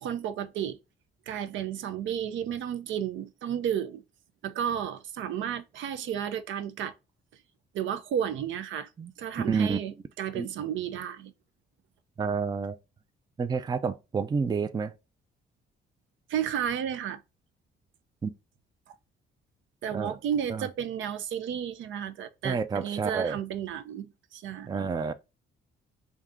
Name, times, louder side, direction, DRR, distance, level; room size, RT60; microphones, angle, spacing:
voice 1, 0.0-0.8 1.3-4.0 4.4-6.9 7.7-8.9 9.2-11.3 16.3-17.2 18.9-19.0 19.8-24.8, right 9 dB, 75° right, 0.5 m, -32 dB
voice 2, 9.5-9.8 10.3-10.5 12.2-12.8 13.4-14.9 18.2-18.3 19.9-20.1 20.5-20.7 22.4-23.4 24.7-25.1, right 5 dB, 20° right, 0.4 m, -29 dB
3.6 x 2.8 x 3.6 m
cardioid pair, 90°, 20 cm